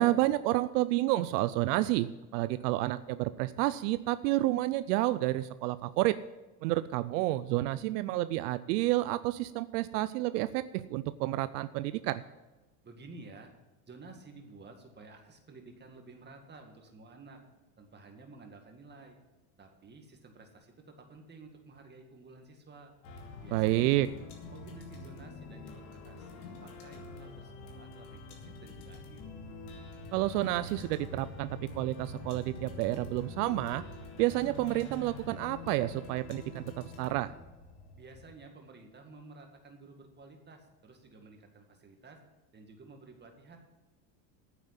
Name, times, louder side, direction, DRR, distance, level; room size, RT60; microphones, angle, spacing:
voice 1, 0.0-6.2 6.6-12.2 23.5-24.1 30.1-31.5 31.8-33.8 34.2-37.3, right 16 dB, 80° right, 15 dB, 0.6 m, -30 dB
voice 2, 12.8-13.5 13.9-17.4 17.8-19.2 19.6-22.9 23.4-24.2 24.5-29.3 37.9-42.2 42.5-43.6, right 3 dB, 20° right, 4 dB, 2.0 m, -52 dB
sound 1, 23.0-38.3, left 3 dB, 75° left, 2.7 m, -46 dB
9.3 x 7.4 x 8.7 m, 1.1 s
supercardioid pair, 115°, 46 cm